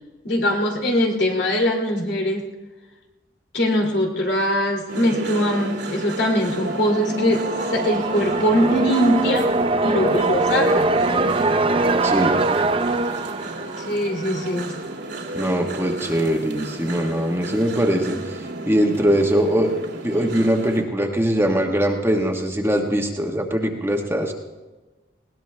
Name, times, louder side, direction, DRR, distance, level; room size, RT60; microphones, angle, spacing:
voice 1, 0.2-2.5 3.5-9.6 9.8-11.0 13.8-14.8, equal, 65° left, 1 dB, 2.6 m, -22 dB
sound 1, 4.9-20.8, right 2 dB, 75° right, 2.2 m, -32 dB
sound 2, 6.9-14.7, right 2 dB, 30° right, 0.6 m, -22 dB
voice 2, 12.0-12.4 15.3-19.7 20.0-24.3, equal, 15° right, 2 dB, 1.3 m, -21 dB
20.0 x 18.5 x 3.3 m, 1.2 s
head